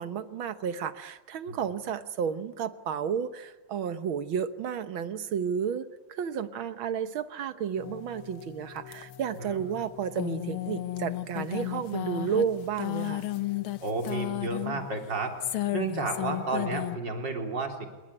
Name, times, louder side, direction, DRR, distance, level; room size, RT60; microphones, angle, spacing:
voice 1, 0.0-13.3, right 7 dB, 70° right, 11 dB, 1.9 m, -32 dB
sound 1, 7.8-17.0, left 14 dB, 75° left, 1.9 m, -34 dB
voice 2, 13.8-15.3 15.7-17.9, right 3 dB, 55° right, 3 dB, 4.3 m, -32 dB
26.0 x 22.5 x 9.9 m, 1.2 s
omnidirectional pair, 2.3 m